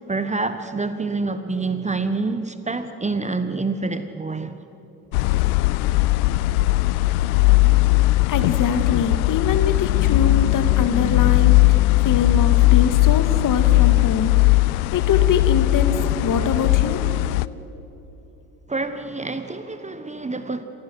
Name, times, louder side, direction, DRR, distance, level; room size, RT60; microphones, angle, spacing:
voice 1, 0.1-4.6 18.7-20.6, right 3 dB, 15° right, 1.3 m, -27 dB
sound 1, 5.1-17.5, left 20 dB, 65° left, 0.7 m, -18 dB
voice 2, 8.3-11.8 12.0-17.0, left 5 dB, 45° left, 2.1 m, -24 dB
28.0 x 16.0 x 7.8 m
hypercardioid pair, 65°, 45 cm